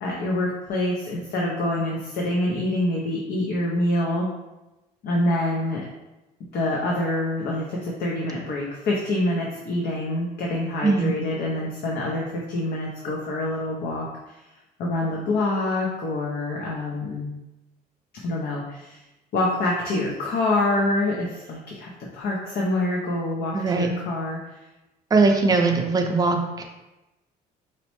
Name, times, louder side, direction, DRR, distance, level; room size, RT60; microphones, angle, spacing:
voice 1, 0.0-4.3 5.0-5.9 6.5-14.4 14.8-17.3 18.2-19.0 19.3-24.6, left 1 dB, 70° left, -2 dB, 0.6 m, -26 dB
voice 2, 10.8-11.2 23.5-23.9 25.1-26.6, right 3 dB, 20° right, 3 dB, 0.5 m, -20 dB
4.2 x 2.0 x 3.0 m, 1.0 s
cardioid pair, 110°, 17 cm